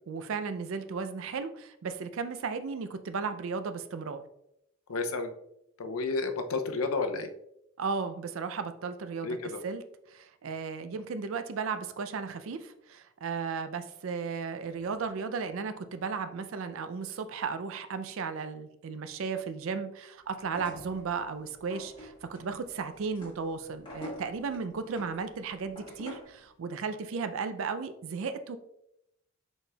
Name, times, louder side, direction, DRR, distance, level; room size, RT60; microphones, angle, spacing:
voice 1, 0.1-4.2 7.8-9.8 10.1-28.6, right 5 dB, 65° right, 10 dB, 0.4 m, -35 dB
voice 2, 4.9-5.3 5.8-7.3 9.2-9.6, left 3 dB, 80° left, 7 dB, 0.5 m, -31 dB
sound 1, 20.4-26.4, equal, 25° left, 1.3 m, -47 dB
4.9 x 4.2 x 2.3 m, 0.80 s
head